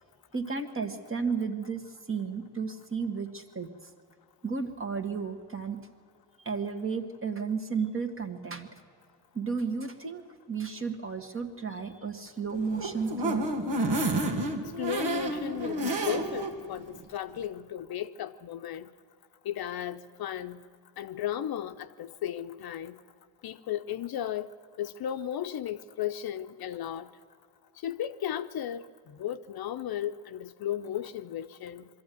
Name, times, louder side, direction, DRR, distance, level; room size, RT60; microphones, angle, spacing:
voice 1, 0.3-1.8 2.1-3.7 4.4-5.8 6.4-8.7 9.3-10.2 10.5-13.4, right 5 dB, 30° right, 1.8 m, -33 dB
sound 1, 12.6-16.5 16.9-17.0 17.4-17.5, right 1 dB, 70° right, 2.3 m, -30 dB
voice 2, 14.8-18.9 19.4-20.6 21.0-23.0 23.4-24.5 24.8-27.1 27.8-31.9, left 11 dB, 60° left, 0.8 m, -35 dB
22.5 x 13.5 x 9.4 m
cardioid pair, 100°, 43 cm